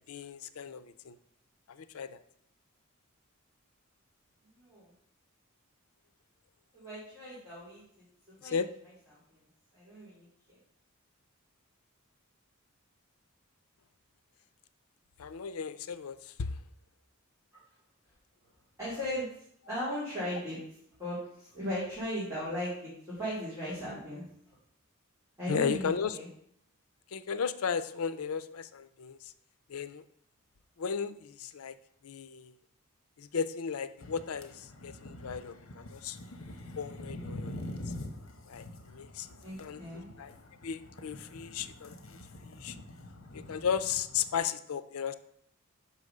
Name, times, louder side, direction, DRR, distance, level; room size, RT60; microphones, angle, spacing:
voice 1, 0.1-1.2 1.7-2.2 8.4-8.7 15.2-16.6 25.5-26.2 27.1-29.3 29.7-30.0 30.8-31.8 32.0-32.5 33.2-36.2 36.8-37.7 38.5-39.3 39.6-39.8 40.2-40.3 40.6-41.9 42.5-42.8 43.3-45.1, left 6 dB, 85° left, 13 dB, 0.5 m, -35 dB
voice 2, 4.5-4.9 6.7-8.6 9.3-9.4 9.7-10.6 18.8-19.3 19.7-20.6 21.0-24.2 25.4-26.3 39.4-40.1, equal, 15° right, -10 dB, 2.8 m, -37 dB
sound 1, 34.0-44.4, left 1 dB, 65° left, 0.9 m, -45 dB
5.7 x 4.8 x 6.5 m, 0.70 s
head